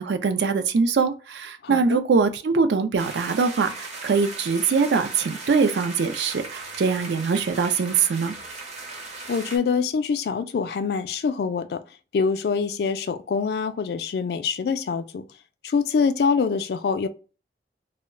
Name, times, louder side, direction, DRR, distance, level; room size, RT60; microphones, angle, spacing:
voice 1, 0.0-8.3, right 5 dB, 80° right, 0.4 m, -23 dB
voice 2, 1.6-2.0 9.3-11.8 12.1-15.3 15.6-17.1, left 5 dB, 65° left, 0.3 m, -25 dB
sound 1, 3.0-9.6, right 3 dB, 40° right, 0.6 m, -38 dB
2.2 x 2.1 x 3.6 m
head